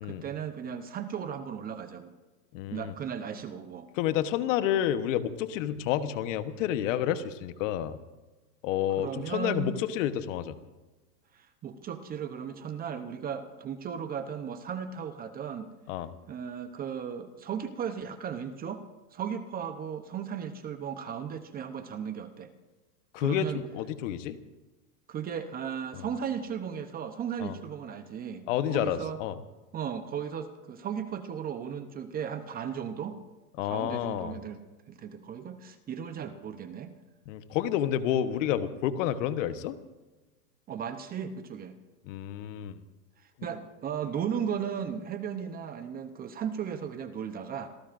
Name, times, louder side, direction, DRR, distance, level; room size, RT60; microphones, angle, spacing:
voice 1, 0.0-2.1 2.7-3.9 9.0-9.8 11.3-15.7 16.3-18.8 19.1-22.5 23.2-23.6 25.1-29.2 29.7-33.2 33.6-34.6 34.9-36.9 40.7-41.7 43.2-47.7, right 8 dB, 20° right, 9 dB, 0.8 m, -36 dB
voice 2, 2.5-2.9 4.0-8.0 8.6-10.6 15.9-16.1 23.1-24.4 26.0-26.1 27.4-27.5 28.5-29.4 33.6-34.4 37.3-39.7 42.1-42.8, left 10 dB, 50° left, 11 dB, 1.2 m, -29 dB
27.0 x 17.0 x 2.6 m, 1.2 s
hypercardioid pair, 135°, 48 cm